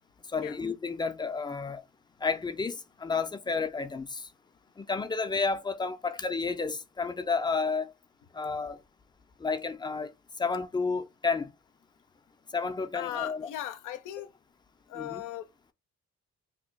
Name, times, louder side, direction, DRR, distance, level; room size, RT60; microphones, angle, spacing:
voice 1, 0.3-1.8 2.2-4.3 4.8-7.9 8.3-8.8 9.4-10.1 10.4-11.5 12.5-13.5 14.9-15.2, left 4 dB, 15° left, 0.3 m, -31 dB
voice 2, 12.9-14.3 14.9-15.5, left 12 dB, 90° left, 0.5 m, -37 dB
2.8 x 2.2 x 3.8 m
cardioid pair, 90°, 30 cm